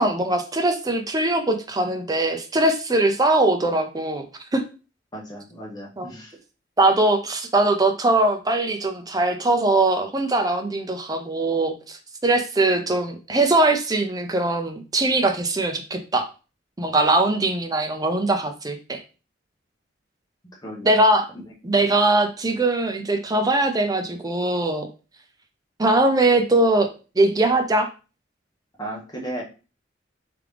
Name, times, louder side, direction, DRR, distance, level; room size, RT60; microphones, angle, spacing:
voice 1, 0.0-4.2 4.5-4.6 6.0-6.1 6.8-16.3 16.8-19.0 20.8-21.3 21.6-24.9 25.8-26.9 27.2-27.9, right 2 dB, 20° right, 6 dB, 0.6 m, -21 dB
voice 2, 5.1-6.3 20.6-21.0 28.8-29.4, right 1 dB, 20° left, -2 dB, 1.3 m, -35 dB
3.6 x 3.4 x 3.3 m, 0.33 s
head